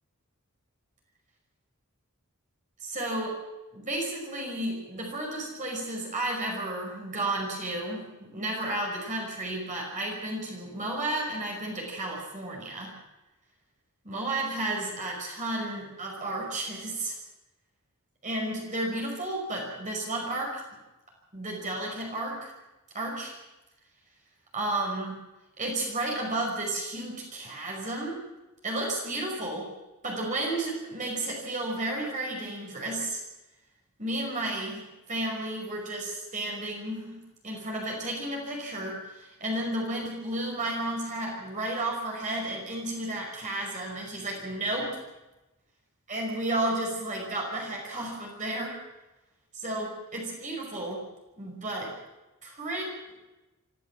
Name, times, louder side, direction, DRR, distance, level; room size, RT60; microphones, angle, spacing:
voice 1, 2.8-3.4 3.7-12.9 14.0-17.2 18.2-20.6 21.3-22.5 22.9-23.3 24.5-25.2 25.6-28.2 28.6-29.7 30.0-33.2 34.0-37.2 37.4-45.0 46.1-48.8 49.5-51.0 51.4-51.9 52.4-52.9, right 1 dB, 35° right, -1 dB, 5.6 m, -32 dB
25.5 x 15.0 x 7.4 m, 1.0 s
head